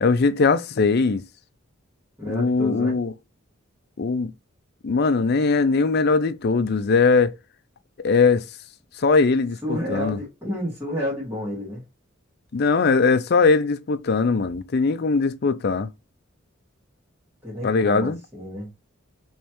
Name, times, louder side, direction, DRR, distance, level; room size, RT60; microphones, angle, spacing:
voice 1, 0.0-1.2 2.2-3.1 4.0-4.3 4.8-7.3 8.0-8.4 9.0-10.2 12.5-15.9 17.6-18.2, left 4 dB, 55° left, 0.5 m, -20 dB
voice 2, 2.2-3.0 9.6-11.8 17.4-18.7, left 1 dB, 10° right, 1.9 m, -30 dB
5.2 x 3.1 x 3.0 m
head